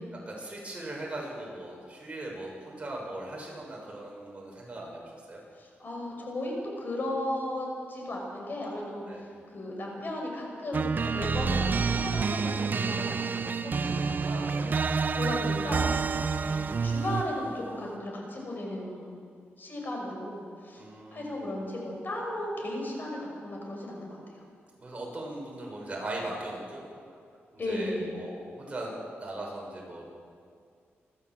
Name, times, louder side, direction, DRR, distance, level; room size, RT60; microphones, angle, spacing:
voice 1, 0.3-5.4 9.1-9.2 14.2-14.8 20.8-21.5 24.8-26.8 27.5-28.9 29.2-30.0, right 2 dB, 30° right, -2 dB, 6.5 m, -39 dB
voice 2, 5.6-14.2 15.2-15.9 16.4-19.2 19.6-20.8 21.1-24.2 27.6-28.1, left 1 dB, 50° left, 0 dB, 5.9 m, -35 dB
sound 1, 10.7-17.4, right 5 dB, 45° right, 0.7 m, -28 dB
28.5 x 13.0 x 7.7 m, 2.3 s
wide cardioid pair, 110°, 4 cm